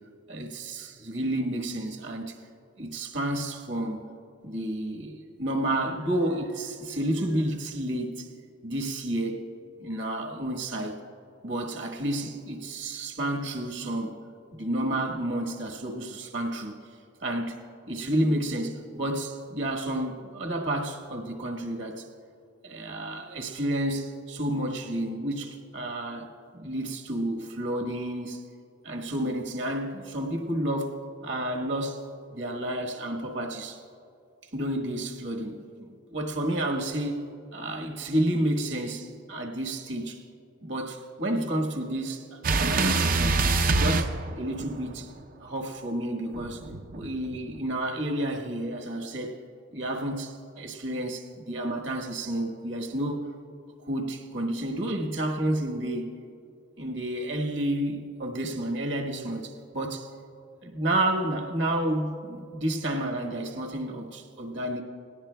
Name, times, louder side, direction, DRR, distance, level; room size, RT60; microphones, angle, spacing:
voice 1, 0.3-2.4 2.8-4.0 4.4-8.3 8.6-9.4 9.8-11.0 11.4-14.2 14.5-16.8 17.2-22.1 22.6-28.5 28.8-32.0 32.3-33.8 34.5-37.3 37.5-40.2 40.6-45.1 45.4-46.6 46.9-49.4 49.7-53.3 53.8-56.1 56.8-60.1 60.6-64.8, right 1 dB, 60° right, 2 dB, 1.2 m, -30 dB
sound 1, 42.4-44.9 46.3-47.6, right 3 dB, 45° right, 0.5 m, -25 dB
19.5 x 17.5 x 2.2 m, 2.5 s
head